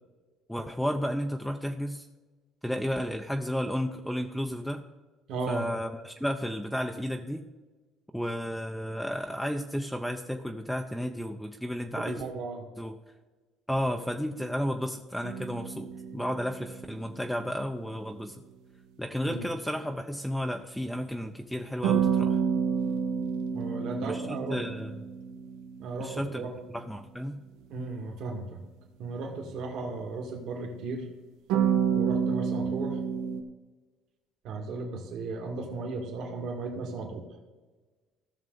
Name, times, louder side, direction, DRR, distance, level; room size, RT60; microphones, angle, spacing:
voice 1, 0.5-2.0 2.6-4.8 5.5-7.5 8.1-12.2 12.8-12.9 13.7-18.4 19.0-22.4 24.0-24.9 26.0-26.4 26.7-27.4, equal, ahead, 4 dB, 0.5 m, -32 dB
voice 2, 5.3-5.7 12.0-12.7 19.3-19.5 23.5-24.6 25.8-26.5 27.7-28.6 29.0-31.1 31.9-33.0 34.4-37.3, right 3 dB, 65° right, 1 dB, 1.9 m, -35 dB
sound 1, 15.2-17.5 21.8-26.6 31.5-33.4, right 7 dB, 85° right, 0.9 m, -29 dB
16.0 x 6.3 x 3.9 m, 1.3 s
cardioid pair, 125°, 0 cm